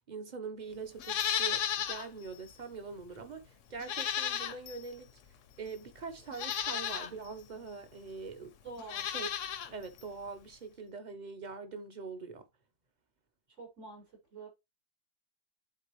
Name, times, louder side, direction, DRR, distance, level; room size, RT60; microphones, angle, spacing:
voice 1, 0.1-5.1 5.6-8.5 9.1-9.3 9.7-12.4, right 5 dB, 40° right, 1.0 m, -43 dB
Livestock farm animals working animals, 1.0-2.1 2.5-2.6 3.8-4.8 5.7-5.8 6.3-7.1 8.8-9.7 10.0-10.1, left 9 dB, 80° left, 1.1 m, -34 dB
voice 2, 8.6-9.1 13.6-14.0 14.3-14.5, right 3 dB, 75° right, 5.4 m, -46 dB
10.5 x 4.1 x 3.1 m
omnidirectional pair, 1.3 m